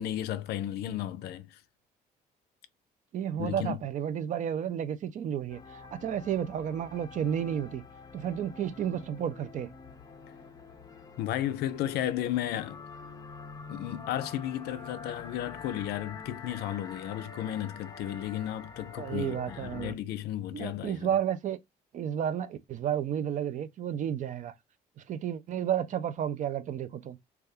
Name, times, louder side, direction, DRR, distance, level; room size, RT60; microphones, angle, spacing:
voice 1, 0.0-1.6 3.4-3.8 11.2-12.8 13.7-21.1, left 12 dB, 75° left, 0.4 m, -34 dB
voice 2, 3.1-7.8 8.1-9.7 19.0-20.0 20.5-21.6 21.9-24.5 25.0-27.2, right 9 dB, 50° right, 0.4 m, -32 dB
sound 1, 5.5-19.9, left 5 dB, 20° left, 0.5 m, -46 dB
2.7 x 2.3 x 3.4 m
cardioid pair, 110°, 17 cm